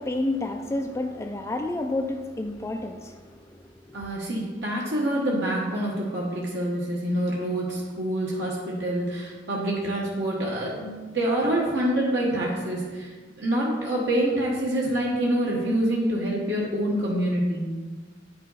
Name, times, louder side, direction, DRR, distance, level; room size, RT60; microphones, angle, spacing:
voice 1, 0.0-3.3, left 2 dB, 15° left, 4 dB, 0.3 m, -29 dB
voice 2, 3.9-17.8, right 1 dB, 70° right, -4 dB, 1.3 m, -26 dB
9.2 x 5.5 x 4.0 m, 1.4 s
head